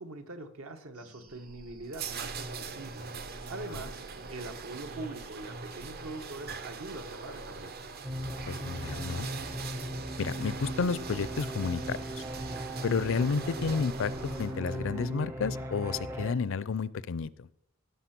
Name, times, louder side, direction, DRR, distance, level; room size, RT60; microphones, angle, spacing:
voice 1, 0.0-4.0 4.3-7.7, right 2 dB, 70° right, 7 dB, 1.3 m, -43 dB
sound 1, 0.9-16.4, right 3 dB, 90° right, 2.4 m, -55 dB
sound 2, 1.3-14.8, right 4 dB, 45° right, 0.8 m, -42 dB
sound 3, 8.0-16.3, equal, 10° right, 0.5 m, -38 dB
voice 2, 8.5-9.3 10.2-12.2 12.8-17.5, left 5 dB, 60° left, 18 dB, 0.5 m, -31 dB
17.0 x 5.8 x 6.0 m, 0.77 s
head